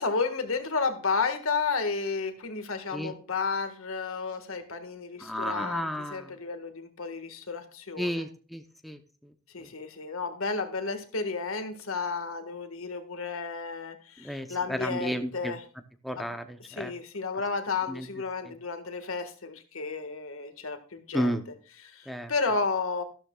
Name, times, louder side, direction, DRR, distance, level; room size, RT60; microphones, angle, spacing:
voice 1, 0.0-8.2 9.5-15.6 16.2-16.3 16.6-21.4 21.8-23.0, left 4 dB, 75° left, 7 dB, 1.6 m, -32 dB
voice 2, 5.2-6.3 8.0-9.0 9.6-9.7 14.2-15.5 16.0-16.9 17.9-18.1 18.4-18.5 21.1-21.4 22.1-22.3, equal, ahead, 6 dB, 0.7 m, -32 dB
13.5 x 12.5 x 2.3 m, 0.38 s
head